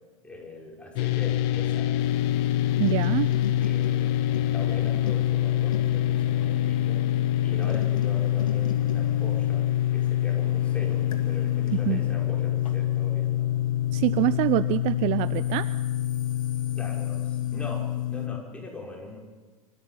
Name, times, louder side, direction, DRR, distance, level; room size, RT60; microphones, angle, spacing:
voice 1, 0.2-1.9 3.6-7.1 7.4-13.5 16.7-19.2, left 2 dB, 5° left, -2 dB, 5.9 m, -41 dB
sound 1, 1.0-18.4, left 12 dB, 45° left, 1.1 m, -25 dB
sound 2, 2.0-14.6 15.2-18.0, left 6 dB, 70° left, 2.6 m, -43 dB
voice 2, 2.8-3.3 11.9-12.0 13.9-15.7, right 17 dB, 40° right, 16 dB, 0.6 m, -25 dB
26.0 x 14.0 x 7.9 m, 1.4 s
figure-of-eight pair, 90°, 18 cm